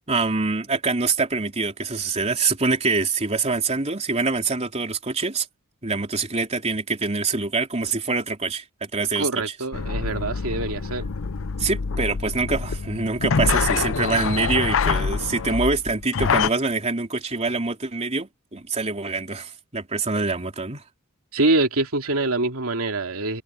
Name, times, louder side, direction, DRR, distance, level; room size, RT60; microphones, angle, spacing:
voice 1, 0.1-5.5 5.8-9.4 11.6-20.8, right 3 dB, 30° right, 3.4 m, -25 dB
voice 2, 9.2-11.1 21.3-23.4, right 2 dB, 85° right, 2.7 m, -24 dB
sound 1, 9.7-16.5, left 5 dB, 65° left, 0.7 m, -25 dB
head